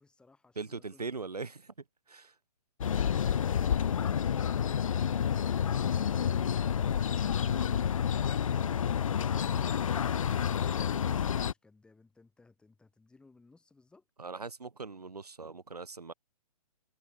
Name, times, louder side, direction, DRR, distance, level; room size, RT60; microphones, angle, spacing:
voice 1, 0.0-1.1 9.8-14.0, left 3 dB, 5° left, 1.9 m, -60 dB
voice 2, 0.6-1.7 2.1-2.3 9.5-9.7 14.2-16.1, right 4 dB, 80° right, 1.0 m, -41 dB
sound 1, 2.8-11.5, left 8 dB, 60° left, 0.4 m, -29 dB
figure-of-eight pair, 125°, 20 cm